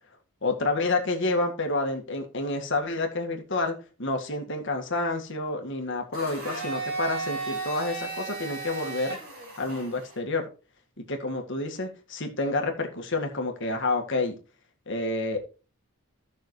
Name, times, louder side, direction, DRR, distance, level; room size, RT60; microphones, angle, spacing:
voice 1, 0.4-9.2 9.6-10.4 11.0-14.3 14.9-15.4, left 2 dB, 55° left, 4 dB, 1.8 m, -29 dB
Domestic sounds home sounds, 6.1-10.2, right 4 dB, 45° right, 5.6 m, -35 dB
15.0 x 6.3 x 3.2 m, 0.33 s
head